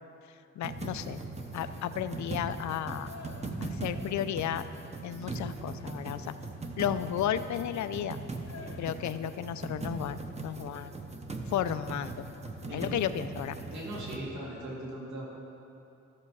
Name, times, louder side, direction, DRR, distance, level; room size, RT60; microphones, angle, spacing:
voice 1, 0.6-1.2 1.5-3.1 3.6-4.7 5.0-6.3 6.8-8.2 8.8-10.9 11.5-12.2 12.7-13.6, left 10 dB, 80° left, 12 dB, 0.5 m, -33 dB
sound 1, 0.6-14.2, right 3 dB, 25° right, 0.7 m, -40 dB
sound 2, 1.6-9.2, left 5 dB, 65° left, 1.0 m, -53 dB
voice 2, 12.7-13.0 13.7-15.3, right 1 dB, 80° right, -5 dB, 2.8 m, -39 dB
14.0 x 6.8 x 4.8 m, 2.7 s
wide cardioid pair, 140°, 29 cm